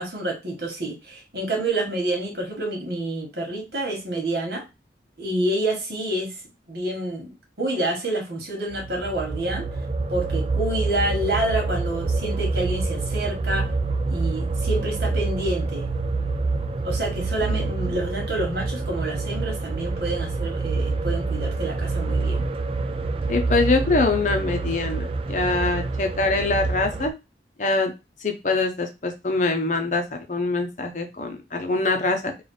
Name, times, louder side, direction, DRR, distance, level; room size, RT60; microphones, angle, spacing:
voice 1, 0.0-4.6 5.2-6.4 6.7-9.7 10.1-13.7 14.1-15.9 16.8-22.5, right 1 dB, 65° right, 1.5 m, -28 dB
sound 1, 8.7-27.1, right 3 dB, 30° right, 0.3 m, -27 dB
voice 2, 23.3-27.1 27.6-27.9 28.2-32.3, left 3 dB, 45° left, 0.7 m, -24 dB
3.4 x 2.4 x 3.8 m
head